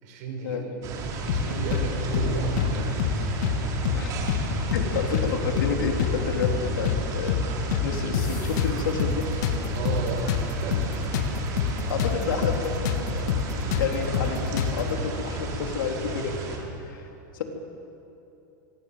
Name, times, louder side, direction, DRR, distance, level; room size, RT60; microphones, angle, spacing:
voice 1, 0.0-0.6 1.2-2.9 9.7-10.8, right 3 dB, 55° right, 3 dB, 6.6 m, -32 dB
sound 1, 0.8-16.6, right 2 dB, 35° right, 4.9 m, -33 dB
sound 2, 1.3-1.9 2.1-2.3 2.6-3.6 3.9-4.0 4.3-5.3 5.6-5.7 6.0-7.0 7.3-7.4 7.7-9.2 9.4-12.2 12.4-12.6 12.9-14.9, left 8 dB, 60° left, 2.5 m, -26 dB
voice 2, 4.6-7.4 7.8-9.2 11.9-13.4 13.8-16.3 16.9-17.1, left 5 dB, 85° left, 2 dB, 3.9 m, -30 dB
26.0 x 25.0 x 7.7 m, 2.9 s
supercardioid pair, 155°, 11 cm